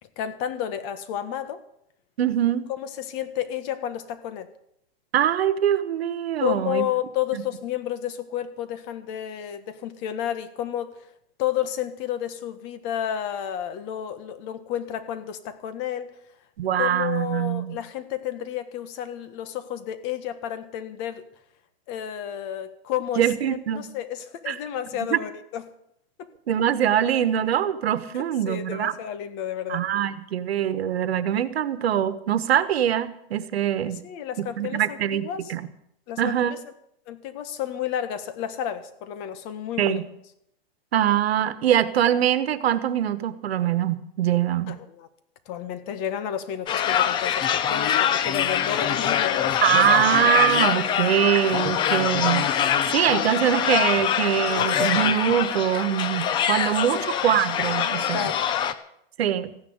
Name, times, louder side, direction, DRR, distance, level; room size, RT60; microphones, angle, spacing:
voice 1, 0.2-1.6 2.7-4.5 6.4-10.9 11.4-16.1 16.8-21.2 21.9-25.6 26.2-26.3 28.1-29.9 33.8-35.5 36.1-36.6 37.1-40.0 44.7-45.1 45.5-49.6 56.9-57.0 58.1-58.4, left 10 dB, 35° left, 11 dB, 1.5 m, -31 dB
voice 2, 2.2-2.6 5.1-6.8 7.3-7.4 16.6-17.8 23.2-23.9 24.5-24.6 25.0-25.2 26.5-28.9 29.7-34.0 34.6-35.6 36.2-36.5 39.8-40.0 40.9-44.8 49.6-52.5 52.9-58.3 59.2-59.5, right 10 dB, 85° right, 14 dB, 1.4 m, -23 dB
sound 1, 46.7-58.7, left 9 dB, 15° left, 0.5 m, -24 dB
15.0 x 10.5 x 8.0 m, 0.75 s
supercardioid pair, 155°, 30 cm